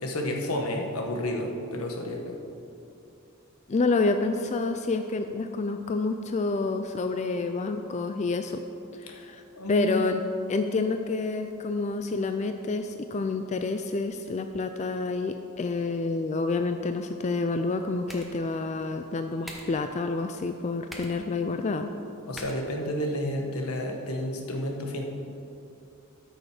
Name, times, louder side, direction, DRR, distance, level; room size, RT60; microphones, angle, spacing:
voice 1, 0.0-2.4 9.1-9.3 9.5-10.0 22.3-25.0, left 1 dB, 85° left, 1 dB, 1.3 m, -31 dB
voice 2, 3.7-8.6 9.0-9.4 9.7-10.2 10.5-21.9, left 3 dB, 30° left, 7 dB, 0.3 m, -28 dB
sound 1, 17.5-23.5, equal, ahead, 1.1 m, -48 dB
13.0 x 6.4 x 4.9 m, 2.6 s
head